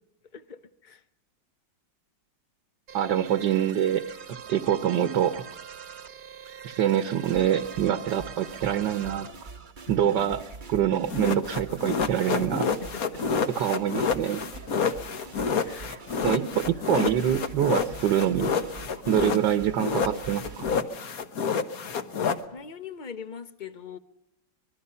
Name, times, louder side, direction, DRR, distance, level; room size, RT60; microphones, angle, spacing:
voice 1, 0.3-1.0 9.9-10.4 12.6-13.2 14.7-15.1 15.4-16.6 22.5-24.0, left 6 dB, 35° left, 12 dB, 0.7 m, -42 dB
sound 1, 2.9-9.3, right 8 dB, 55° right, 1.4 m, -44 dB
voice 2, 2.9-4.2 4.5-5.4 6.6-9.3 9.9-10.4 10.7-12.7 13.5-14.4 15.8-18.6 19.1-20.6, right 10 dB, 75° right, 10 dB, 1.6 m, -25 dB
sound 2, 7.2-20.8, right 4 dB, 30° right, 1.0 m, -44 dB
sound 3, 11.1-19.5 19.8-22.4, left 6 dB, 55° left, 1.5 m, -28 dB
24.5 x 21.5 x 5.6 m, 0.82 s
omnidirectional pair, 2.0 m